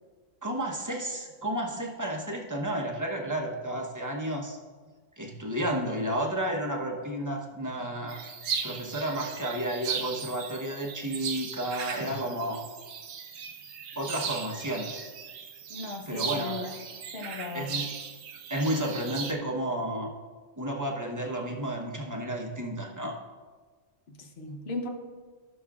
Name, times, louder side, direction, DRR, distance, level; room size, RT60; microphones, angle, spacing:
voice 1, 0.4-4.6 5.2-8.2 8.6-12.6 14.0-14.9 16.1-16.6 17.5-17.9 18.5-20.1 20.6-23.2, right 1 dB, 15° right, 0 dB, 1.0 m, -32 dB
sound 1, 8.1-19.3, right 6 dB, 90° right, 1.1 m, -37 dB
voice 2, 15.7-16.7 17.1-17.8 24.1-24.9, left 3 dB, 55° left, 4 dB, 1.1 m, -37 dB
16.5 x 6.2 x 2.4 m, 1.4 s
omnidirectional pair, 1.3 m